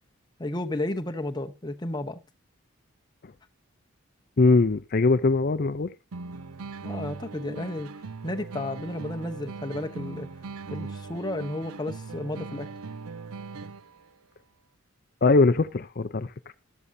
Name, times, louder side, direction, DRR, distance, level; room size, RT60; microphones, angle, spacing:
voice 1, 0.4-2.2 6.8-7.9 8.2-10.3 10.7-12.7, left 1 dB, 20° left, 0.9 m, -32 dB
voice 2, 4.4-5.9 15.2-16.5, left 3 dB, 45° left, 0.5 m, -21 dB
sound 1, 6.1-14.1, right 4 dB, 85° right, 0.6 m, -39 dB
14.0 x 12.5 x 2.7 m
head